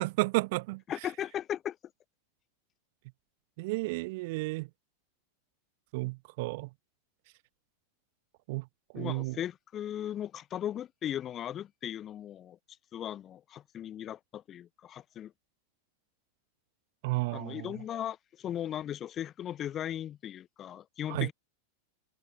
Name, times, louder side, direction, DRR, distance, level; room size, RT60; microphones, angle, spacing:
voice 1, 0.0-0.8 3.6-4.7 5.9-6.7 8.5-8.7 8.9-9.4 17.0-17.7 21.1-21.3, right 24 dB, 50° right, 0.4 m, -32 dB
voice 2, 0.9-1.8 8.9-12.6 12.9-15.3 17.3-21.3, left 10 dB, 30° left, 0.7 m, -37 dB
figure-of-eight pair, 90°, 0 cm